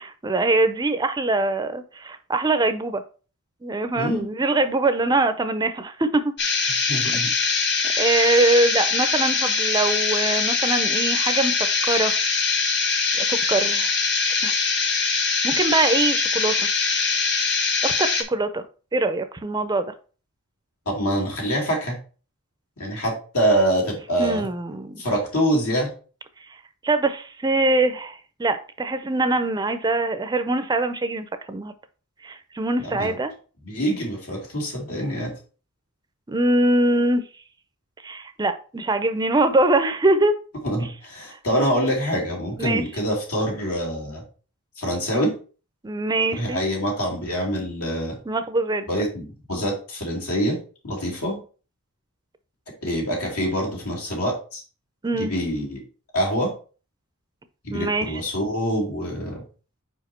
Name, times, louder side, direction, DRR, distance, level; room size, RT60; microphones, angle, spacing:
voice 1, 0.0-3.0 3.6-6.3 7.0-7.2 8.0-11.5 11.8-12.1 13.2-13.9 14.4-14.6 15.4-16.7 17.8-18.6 18.9-19.9 24.2-25.0 26.8-31.7 32.2-33.3 36.3-37.2 38.0-40.3 42.6-42.8 45.8-46.6 48.3-49.0 55.0-55.3 57.7-58.2, right 2 dB, 20° right, 10 dB, 0.5 m, -23 dB
sound 1, 6.4-18.2, left 5 dB, 50° left, 1.1 m, -22 dB
voice 2, 6.9-7.3 20.9-22.0 22.8-24.4 25.0-25.9 32.8-33.1 33.6-35.3 40.6-44.2 44.8-45.3 46.4-48.2 48.9-50.6 50.8-51.4 52.8-54.6 55.2-55.8 56.1-56.5 57.6-59.4, equal, 80° left, -1 dB, 2.7 m, -25 dB
5.0 x 4.9 x 4.4 m, 0.37 s
head